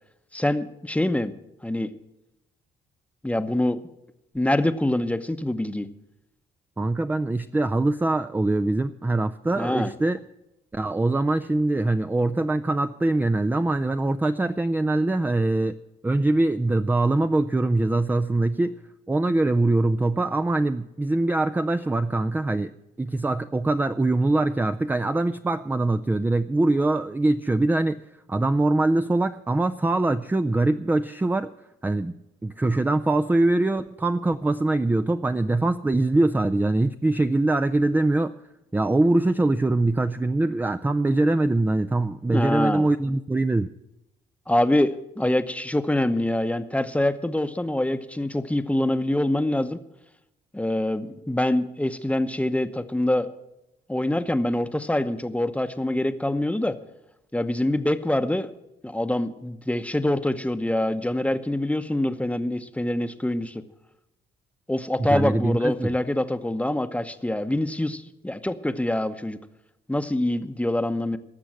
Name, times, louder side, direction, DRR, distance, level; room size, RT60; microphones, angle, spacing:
voice 1, 0.3-1.3 1.6-1.9 3.2-3.8 4.3-5.9 9.6-9.9 42.3-42.9 44.5-49.8 50.5-53.3 53.9-56.8 57.3-58.5 58.8-63.6 64.7-69.4 69.9-71.2, left 1 dB, 5° left, 10 dB, 0.8 m, -25 dB
voice 2, 6.8-10.2 10.7-15.8 16.0-18.8 19.1-22.7 23.0-28.0 28.3-31.5 31.8-32.1 32.4-38.3 38.7-43.7 65.0-65.9, right 2 dB, 10° right, 10 dB, 0.4 m, -23 dB
18.5 x 6.9 x 7.5 m, 0.90 s
cardioid pair, 90°, 20 cm